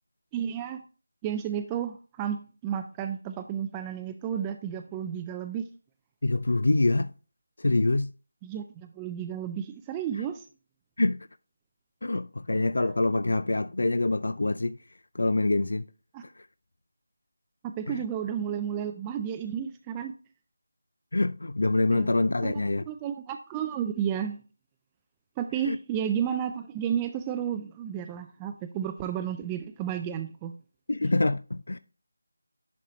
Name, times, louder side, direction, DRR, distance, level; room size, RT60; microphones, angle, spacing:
voice 1, 0.3-0.8 1.2-5.7 8.4-10.5 16.1-16.2 17.6-20.1 21.9-22.2 22.4-24.4 25.4-30.5, right 9 dB, 10° right, 0.3 m, -32 dB
voice 2, 6.2-7.1 7.6-8.1 11.0-11.3 12.0-14.8 15.1-15.8 16.2-16.5 17.9-18.0 21.1-22.8 25.6-25.8 30.9-31.8, left 2 dB, 70° left, 0.4 m, -25 dB
10.5 x 4.1 x 3.1 m
figure-of-eight pair, 170°, 0 cm